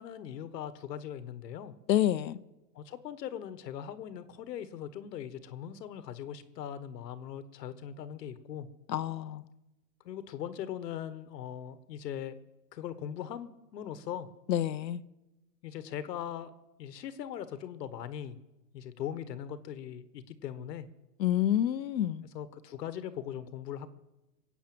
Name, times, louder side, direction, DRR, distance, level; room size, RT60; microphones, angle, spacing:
voice 1, 0.0-1.7 2.7-8.7 10.0-12.4 12.7-14.3 15.6-16.5 16.8-18.4 18.7-20.9 22.3-23.9, left 9 dB, 75° left, 1.4 m, -40 dB
voice 2, 1.9-2.4 8.9-9.4 14.5-15.0 21.2-22.2, left 11 dB, 90° left, 0.9 m, -28 dB
21.0 x 8.3 x 7.8 m
hypercardioid pair, 135°, 50 cm